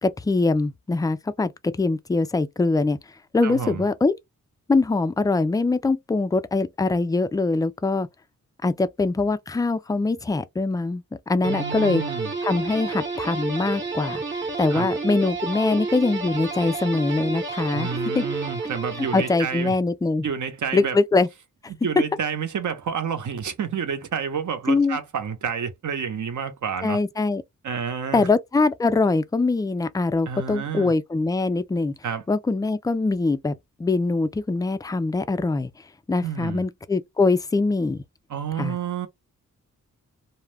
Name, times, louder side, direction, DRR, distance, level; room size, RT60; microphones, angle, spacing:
voice 1, 0.0-1.5 1.8-3.0 3.3-4.1 4.7-8.1 8.6-12.0 12.4-14.2 14.6-17.9 18.2-18.3 19.1-20.2 20.7-21.3 24.7-25.0 26.8-27.4 28.1-31.9 32.3-33.5 33.8-35.7 36.1-38.0 38.6-38.8, left 3 dB, 10° left, 0.3 m, -23 dB
voice 2, 3.4-3.8 11.4-12.3 14.7-14.9 17.7-19.7 20.2-21.0 21.7-27.0 27.6-28.3 30.3-30.9 32.0-32.2 36.2-36.6 38.3-39.1, right 7 dB, 65° right, 0.8 m, -29 dB
sound 1, 11.4-19.8, right 3 dB, 35° right, 0.9 m, -30 dB
2.3 x 2.1 x 3.3 m
cardioid pair, 70°, 33 cm